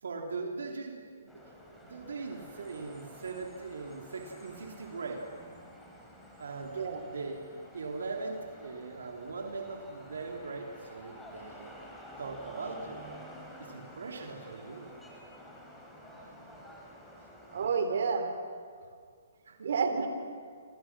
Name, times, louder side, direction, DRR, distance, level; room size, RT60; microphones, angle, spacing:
voice 1, 0.0-1.4 1.7-5.2 6.4-6.8 7.1-7.4 7.7-11.7 12.2-13.0 13.6-14.9 17.2-17.3 19.5-19.7, right 4 dB, 85° right, 2 dB, 3.3 m, -40 dB
sound 1, 1.3-17.7, equal, 5° left, 4.2 m, -50 dB
voice 2, 17.5-18.3 19.6-20.1, right 5 dB, 65° right, 6 dB, 3.6 m, -29 dB
28.0 x 27.5 x 6.2 m, 2.1 s
hypercardioid pair, 155°, 0 cm